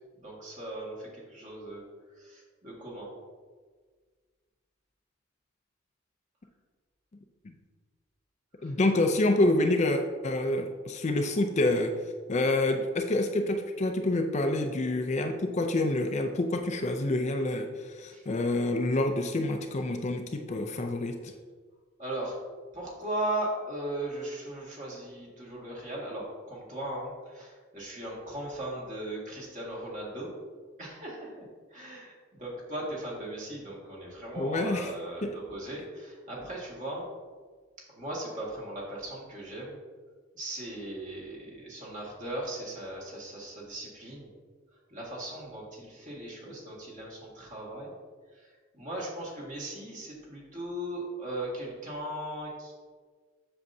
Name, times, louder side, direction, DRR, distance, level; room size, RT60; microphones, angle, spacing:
voice 1, 0.2-1.8 2.1-3.1 8.6-8.7 18.1-18.2 22.0-22.4 22.7-30.3 30.8-31.5 31.7-32.1 32.4-37.0 37.9-39.8 40.3-44.3 44.9-47.9 48.3-52.7, right 1 dB, 40° right, -4 dB, 1.9 m, -38 dB
voice 2, 8.6-21.3 34.4-34.9 35.2-35.4, left 2 dB, 35° left, 5 dB, 0.5 m, -27 dB
7.7 x 6.7 x 2.7 m, 1.5 s
head